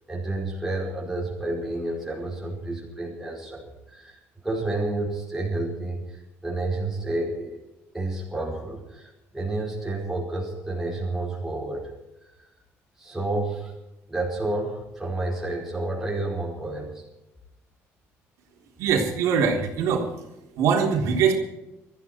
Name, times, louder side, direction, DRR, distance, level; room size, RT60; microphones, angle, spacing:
voice 1, 0.1-7.6 7.9-11.9 12.2-12.3 13.0-13.7 14.1-17.0, right 2 dB, 5° right, -3 dB, 5.2 m, -30 dB
voice 2, 18.8-20.1 20.6-21.3, right 6 dB, 75° right, 0 dB, 3.6 m, -22 dB
22.0 x 14.0 x 4.6 m, 0.96 s
cardioid pair, 150°, 5 cm